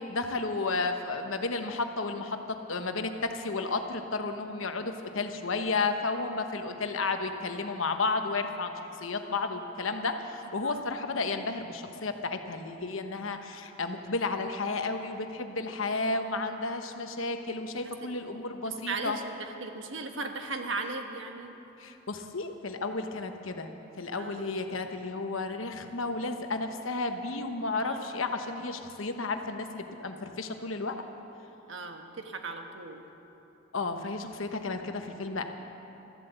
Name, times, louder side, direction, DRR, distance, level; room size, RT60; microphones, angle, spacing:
voice 1, 0.0-8.7 9.0-19.2 21.8-31.0 33.7-35.4, left 3 dB, 80° left, 6 dB, 1.1 m, -32 dB
voice 2, 18.6-21.5 24.2-24.4 27.8-28.0 31.7-33.1, right 3 dB, 70° right, 5 dB, 1.3 m, -37 dB
13.5 x 12.0 x 7.9 m, 2.9 s
head